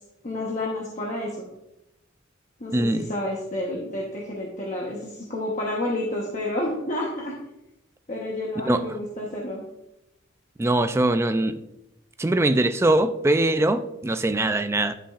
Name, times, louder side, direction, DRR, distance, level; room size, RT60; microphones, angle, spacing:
voice 1, 0.2-1.4 2.6-7.4 8.1-9.6, left 1 dB, 35° left, -3 dB, 1.0 m, -30 dB
voice 2, 2.7-3.1 8.6-8.8 10.6-11.6 12.2-14.9, right 1 dB, 15° right, 10 dB, 0.3 m, -22 dB
11.0 x 5.6 x 2.4 m, 0.88 s
head